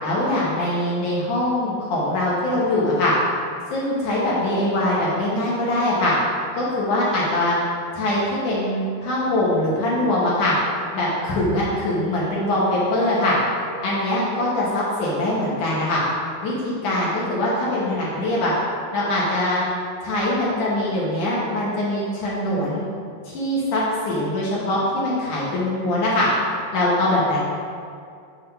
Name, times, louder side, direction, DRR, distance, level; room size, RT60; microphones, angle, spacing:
voice 1, 0.0-3.1 3.7-6.1 6.5-7.6 7.9-10.5 10.9-13.4 13.8-16.0 16.4-18.5 18.9-19.6 20.0-22.8 23.2-26.3 26.7-27.4, left 1 dB, 65° left, -6 dB, 2.0 m, -22 dB
7.9 x 3.7 x 5.6 m, 2.3 s
omnidirectional pair, 5.0 m